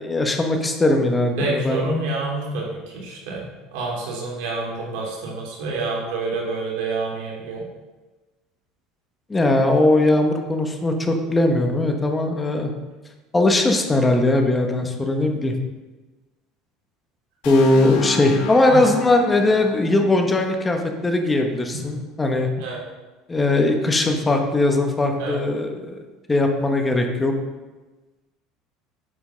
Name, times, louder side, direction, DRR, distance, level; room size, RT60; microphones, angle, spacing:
voice 1, 0.0-1.9 9.3-12.7 13.3-15.5 17.4-22.5 23.3-26.0 26.3-27.3, left 2 dB, 15° left, 3 dB, 1.2 m, -19 dB
voice 2, 1.4-7.6 14.8-15.0 18.7-18.8 21.7-22.0 22.5-22.8 25.2-25.4, right 3 dB, 80° right, -2 dB, 3.0 m, -28 dB
sound 1, 17.4-21.3, left 6 dB, 75° left, 1.8 m, -33 dB
9.6 x 5.7 x 5.7 m, 1.2 s
cardioid pair, 135°, 0 cm